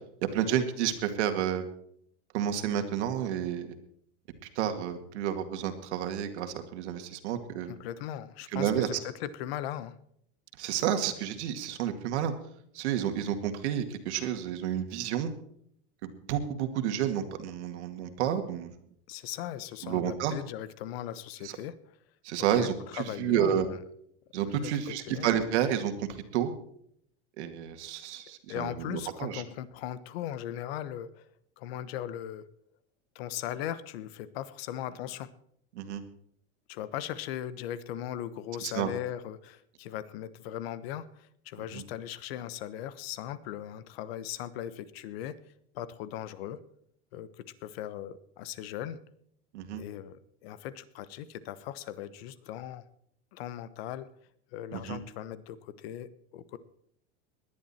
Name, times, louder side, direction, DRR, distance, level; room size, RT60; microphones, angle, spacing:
voice 1, 0.3-1.7 2.3-3.7 4.6-7.7 8.5-8.9 10.6-12.3 12.7-15.3 16.0-18.7 19.8-20.3 21.4-21.5 22.2-23.7 24.3-26.5 27.4-29.4 35.7-36.0 38.6-38.9 41.7-41.8 49.5-49.8 54.7-55.0, right 10 dB, 75° right, 7 dB, 2.2 m, -30 dB
voice 2, 7.6-9.9 19.1-22.0 22.4-23.8 24.4-25.3 28.5-31.3 31.6-32.5 33.1-35.3 36.7-45.4 45.7-46.6 47.1-49.0 49.7-52.8 53.3-54.1 54.5-56.6, left 11 dB, 60° left, 16 dB, 1.2 m, -38 dB
20.0 x 11.0 x 4.3 m, 0.68 s
supercardioid pair, 170°, 34 cm